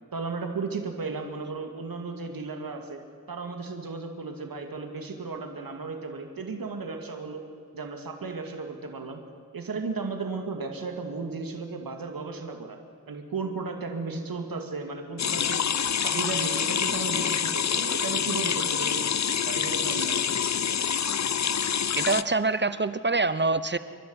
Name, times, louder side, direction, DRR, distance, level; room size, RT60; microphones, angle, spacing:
voice 1, 0.1-3.0 3.3-7.4 7.7-9.2 9.5-12.8 13.1-15.6 16.0-19.1 19.5-20.3, right 4 dB, 80° right, 4 dB, 2.4 m, -35 dB
sound 1, 15.2-22.2, left 8 dB, 50° left, 0.6 m, -26 dB
voice 2, 22.0-23.8, right 3 dB, 30° right, 14 dB, 0.9 m, -25 dB
28.5 x 12.0 x 9.7 m, 2.4 s
wide cardioid pair, 75°, 35 cm